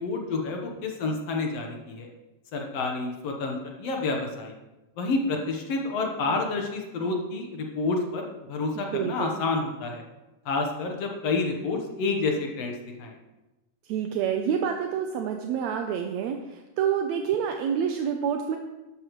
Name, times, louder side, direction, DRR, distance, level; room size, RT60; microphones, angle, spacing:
voice 1, 0.0-2.1 2.5-4.5 5.0-10.0 10.5-13.1, left 3 dB, 65° left, 2 dB, 2.1 m, -29 dB
voice 2, 8.9-9.4 13.9-18.6, right 8 dB, 75° right, 4 dB, 1.9 m, -28 dB
12.5 x 11.5 x 3.1 m, 1.1 s
omnidirectional pair, 3.4 m